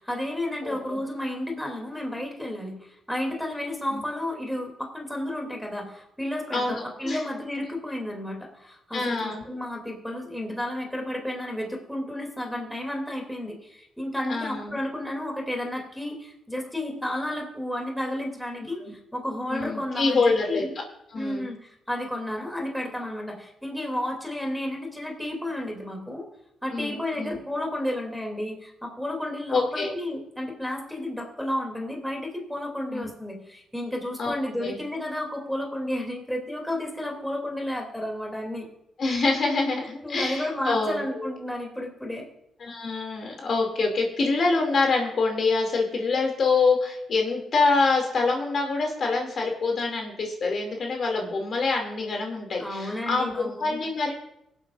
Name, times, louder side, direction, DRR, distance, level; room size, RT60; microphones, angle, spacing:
voice 1, 0.0-20.7 21.1-26.2 26.6-38.7 40.0-42.3 52.6-53.7, left 1 dB, 5° left, 0 dB, 2.7 m, -32 dB
voice 2, 0.6-1.0 3.9-4.0 6.5-7.2 8.9-9.4 14.3-14.8 18.8-18.9 19.5-20.6 21.1-21.5 26.7-27.4 29.5-29.9 32.9-33.1 34.2-34.8 39.0-41.3 42.6-54.1, left 3 dB, 55° left, 2 dB, 2.5 m, -26 dB
24.0 x 8.1 x 2.5 m, 0.78 s
cardioid pair, 85°, 0 cm